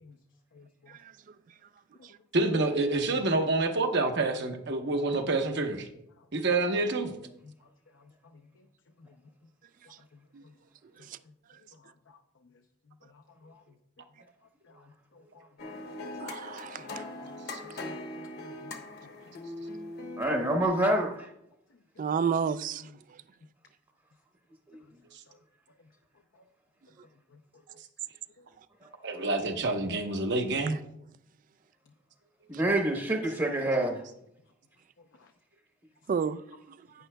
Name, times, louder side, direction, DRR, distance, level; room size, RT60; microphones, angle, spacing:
voice 1, 0.5-1.0 2.0-2.1 6.2-6.3 7.9-8.7 9.0-9.2 10.1-10.2 11.0-11.1 11.7-12.2 13.0-13.8 14.6-15.5 16.8-16.9 17.2-17.9 18.2-18.7 19.0-19.1 22.9-23.0 25.3-25.4 26.3-26.4 27.3-27.4 28.4-28.5 35.2-35.3, left 3 dB, 70° left, 0.6 m, -57 dB
voice 2, 2.3-5.9 6.3-7.1 17.5-17.6 29.0-30.8, right 2 dB, 60° right, 1.0 m, -27 dB
Random stringz, 15.6-20.7, left 1 dB, 55° left, 1.0 m, -40 dB
voice 3, 16.2-17.0 22.0-22.8 36.1-36.4, right 6 dB, 40° right, 0.3 m, -30 dB
voice 4, 20.2-21.3 32.5-34.0, right 1 dB, 20° right, 0.9 m, -27 dB
11.0 x 9.1 x 2.2 m
head